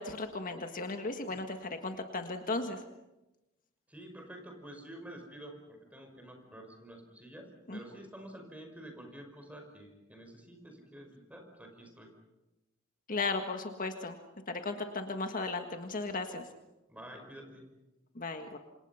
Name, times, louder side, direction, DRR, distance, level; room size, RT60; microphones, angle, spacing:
voice 1, 0.0-2.8 7.7-7.8 13.1-14.2 14.5-16.4 18.1-18.6, left 3 dB, 45° left, 5 dB, 1.7 m, -36 dB
voice 2, 3.9-12.1 16.9-17.6, right 1 dB, 5° right, 4 dB, 5.5 m, -49 dB
28.0 x 27.0 x 5.8 m, 0.99 s
head